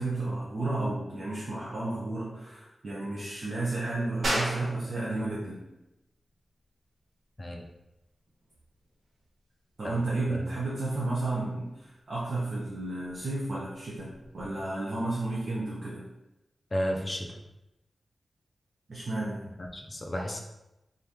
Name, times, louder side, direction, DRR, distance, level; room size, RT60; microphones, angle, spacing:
voice 1, 0.0-5.6 9.8-16.1 18.9-19.5, right 2 dB, 50° right, -7 dB, 0.7 m, -32 dB
sound 1, 4.2-14.5, right 1 dB, 85° right, 1.1 m, -40 dB
voice 2, 16.7-17.3 19.6-20.4, equal, 25° left, 1 dB, 0.4 m, -32 dB
3.7 x 2.8 x 3.5 m, 0.94 s
wide cardioid pair, 170°, 0 cm